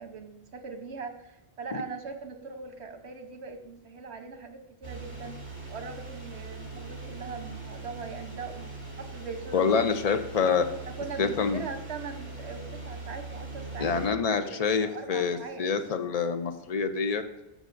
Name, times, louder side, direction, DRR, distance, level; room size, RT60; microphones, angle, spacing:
voice 1, 0.0-5.4 5.7-9.7 10.1-10.2 10.9-15.7, right 5 dB, 80° right, 6 dB, 1.3 m, -41 dB
sound 1, 4.8-14.1, right 3 dB, 55° right, 3.2 m, -41 dB
voice 2, 9.5-10.6 11.2-11.6 13.8-17.2, left 5 dB, 40° left, 8 dB, 0.7 m, -26 dB
14.5 x 6.2 x 2.6 m, 0.99 s
omnidirectional pair, 1.1 m